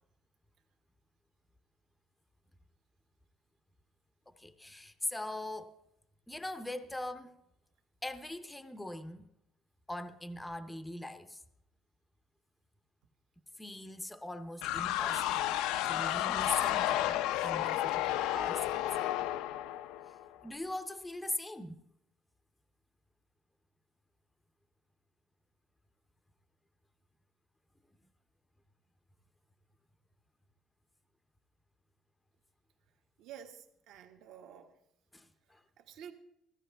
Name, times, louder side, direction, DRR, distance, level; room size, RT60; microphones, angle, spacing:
voice 1, 4.3-5.8 6.3-7.4 8.0-9.3 9.9-11.4 13.6-15.6 15.8-18.8 20.4-21.8 35.1-35.6, left 1 dB, 5° left, 0.6 m, -41 dB
sound 1, 14.6-20.4, left 13 dB, 75° left, 0.5 m, -32 dB
voice 2, 33.2-34.8 35.5-36.1, right 9 dB, 65° right, 1.5 m, -51 dB
15.5 x 15.0 x 3.3 m
cardioid pair, 170°, 0 cm